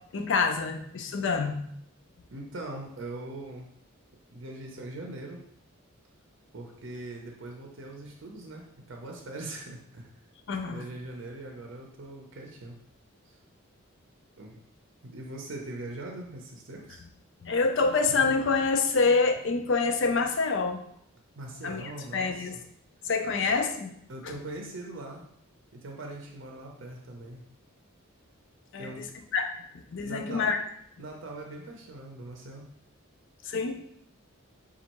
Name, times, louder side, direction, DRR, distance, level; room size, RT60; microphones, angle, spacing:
voice 1, 0.1-1.6 10.5-10.8 17.4-20.8 21.6-22.5 23.0-23.9 28.7-29.0 29.3-29.5 29.9-30.6 33.4-33.8, left 4 dB, 55° left, 5 dB, 0.4 m, -26 dB
voice 2, 2.3-3.7 4.3-5.4 6.5-10.1 10.6-12.8 14.4-14.6 15.0-17.0 21.4-22.6 23.2-23.4 24.1-25.2 25.7-27.4 28.8-29.1 30.0-30.5 31.0-32.7, right 2 dB, 60° right, 1 dB, 0.6 m, -41 dB
5.2 x 2.4 x 2.9 m, 0.68 s
head